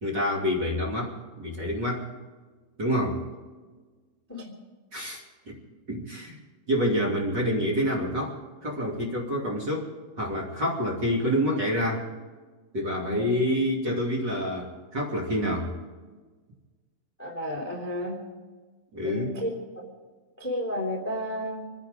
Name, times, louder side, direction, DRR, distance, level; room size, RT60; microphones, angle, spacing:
voice 1, 0.0-2.1 2.8-3.2 4.9-5.6 5.9-6.4 6.7-9.9 10.2-12.1 12.7-15.7 18.9-19.4, equal, 30° right, -4 dB, 2.8 m, -27 dB
voice 2, 13.0-13.3 17.2-18.2 19.0-19.5 20.4-21.7, equal, 5° left, 0 dB, 2.2 m, -32 dB
27.0 x 10.5 x 5.1 m, 1.4 s
omnidirectional pair, 4.4 m